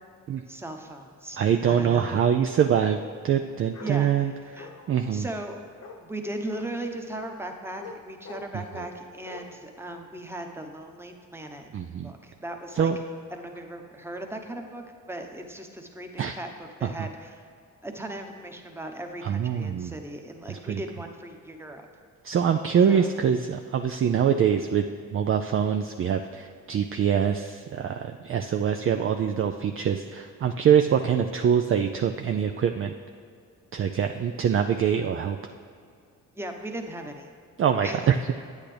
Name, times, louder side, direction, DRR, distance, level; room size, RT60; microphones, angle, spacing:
voice 1, 0.5-2.3 3.8-4.7 5.1-5.6 6.0-11.6 12.0-12.9 13.3-17.5 17.8-21.9 22.9-23.1 36.3-37.3 37.8-38.0, right 1 dB, 5° right, 3 dB, 1.0 m, -38 dB
voice 2, 1.4-3.0 3.2-4.3 4.9-5.2 11.7-12.1 12.8-13.0 16.2-16.3 19.2-19.9 20.5-20.8 22.2-24.8 25.1-32.9 33.7-35.4 37.6-38.1, right 8 dB, 40° right, 5 dB, 0.4 m, -24 dB
Bark, 3.7-4.0 4.6-5.1 5.8-6.0 6.5-6.7 7.2-7.3 7.8-8.0 8.2-8.9 9.3-9.4, left 3 dB, 45° left, 1.1 m, -43 dB
8.7 x 8.3 x 3.3 m, 2.3 s
supercardioid pair, 60°, 35 cm